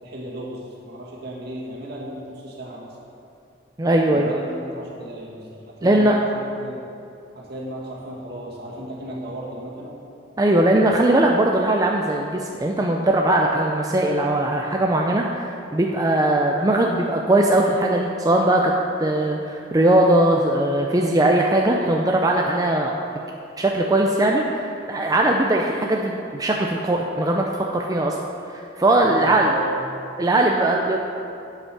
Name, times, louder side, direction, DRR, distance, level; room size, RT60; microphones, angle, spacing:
voice 1, 0.0-3.0 4.1-6.2 6.6-6.9 7.3-9.9 29.0-29.8, equal, 60° right, -3 dB, 2.0 m, -35 dB
voice 2, 3.8-4.4 5.8-6.2 10.4-18.7 19.0-22.9 23.6-27.4 27.7-28.2 28.5-29.6 30.2-31.0, right 1 dB, 20° right, 0 dB, 0.5 m, -20 dB
8.1 x 7.8 x 6.1 m, 2.5 s
head